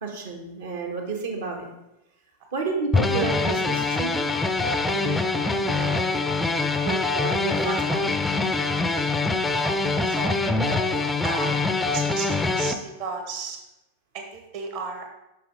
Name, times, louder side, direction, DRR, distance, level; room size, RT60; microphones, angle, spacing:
voice 1, 0.0-1.7 2.5-4.2 4.9-5.2 5.6-6.1 6.8-8.1, right 4 dB, 60° right, 1 dB, 1.5 m, -31 dB
sound 1, 2.9-12.7, left 3 dB, 10° left, 0.5 m, -24 dB
voice 2, 9.5-9.8 10.1-10.4 10.7-11.5 11.8-13.6 14.1-15.1, right 4 dB, 45° right, 2 dB, 1.4 m, -34 dB
7.6 x 5.8 x 3.8 m, 0.93 s
figure-of-eight pair, 90°, 0 cm